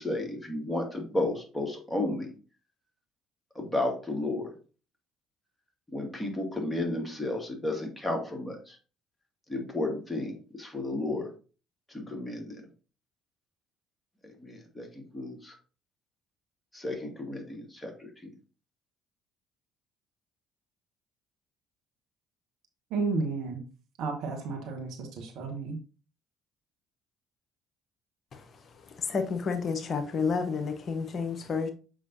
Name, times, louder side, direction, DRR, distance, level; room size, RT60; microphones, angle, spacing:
voice 1, 0.0-2.3 3.6-4.5 5.9-8.6 9.5-11.3 11.9-12.6 14.4-14.9 15.1-15.5 16.7-17.9, left 2 dB, 10° left, 2.2 m, -32 dB
voice 2, 22.9-23.6 24.0-25.8, right 4 dB, 60° right, 1.4 m, -32 dB
voice 3, 29.0-31.7, left 5 dB, 45° left, 0.9 m, -30 dB
7.2 x 5.3 x 2.7 m
figure-of-eight pair, 50°, 0 cm